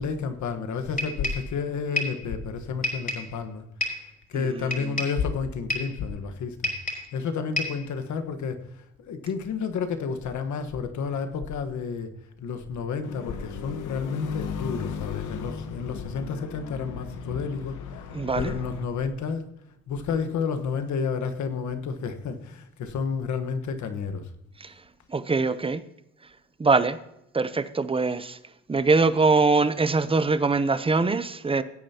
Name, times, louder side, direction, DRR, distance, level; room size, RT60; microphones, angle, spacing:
voice 1, 0.0-3.6 4.3-6.7 7.1-12.1 12.4-18.0 18.3-19.5 19.9-24.3, left 5 dB, 70° left, 1.3 m, -31 dB
sound 1, 1.0-1.5 2.0-2.2 2.8-3.3 3.8-4.1 4.7-5.2 5.7-6.0 6.6-7.1 7.6-7.8, left 1 dB, 30° left, 3.6 m, -30 dB
voice 2, 4.3-4.9 18.1-18.6 24.6-24.7 25.1-25.8 26.6-27.0 27.3-28.4 28.7-31.6, right 3 dB, 20° right, 0.7 m, -23 dB
sound 2, 13.0-18.8, left 6 dB, 90° left, 1.1 m, -36 dB
16.5 x 8.7 x 2.9 m
cardioid pair, 90°, 30 cm